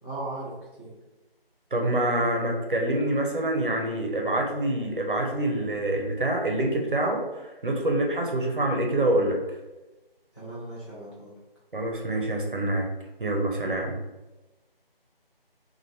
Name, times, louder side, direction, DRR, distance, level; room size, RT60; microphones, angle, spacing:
voice 1, 0.0-0.9 10.3-11.3, right 2 dB, 25° left, -11 dB, 0.8 m, -37 dB
voice 2, 1.7-9.4 11.7-12.9 13.2-14.0, right 1 dB, 60° right, 1 dB, 0.8 m, -26 dB
3.1 x 2.5 x 4.1 m, 1.1 s
figure-of-eight pair, 165°, 30 cm